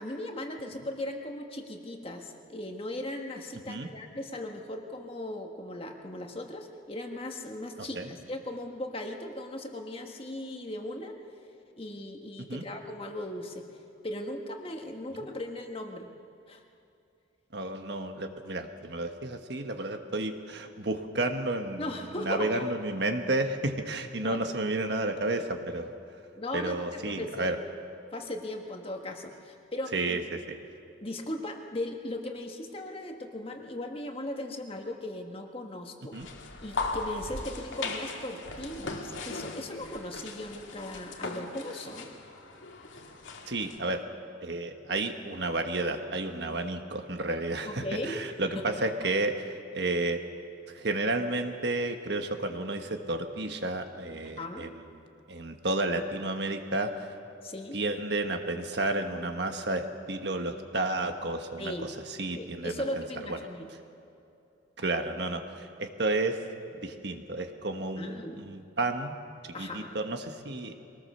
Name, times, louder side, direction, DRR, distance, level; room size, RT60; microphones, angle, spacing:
voice 1, 0.0-11.2 11.7-13.7 14.0-16.1 16.5-16.6 21.8-22.7 24.2-24.4 26.4-27.5 28.1-30.2 31.0-36.2 36.6-42.1 47.6-48.6 49.0-49.1 54.4-54.7 57.4-57.8 61.6-61.9 62.3-63.7 68.0-68.4 69.5-70.0, left 1 dB, 30° left, 3 dB, 1.6 m, -38 dB
voice 2, 7.8-8.1 12.5-12.6 15.1-15.2 17.5-21.9 22.2-26.0 26.5-27.6 29.9-30.6 36.1-36.3 43.5-44.0 44.4-50.2 50.7-54.7 55.3-56.9 57.7-61.7 62.2-63.0 63.3-63.4 64.8-66.4 66.7-69.2 69.6-70.8, right 2 dB, 60° right, 5 dB, 1.4 m, -31 dB
sound 1, 36.1-43.8, left 3 dB, 85° left, 2.1 m, -38 dB
23.0 x 19.0 x 6.7 m, 2.7 s
head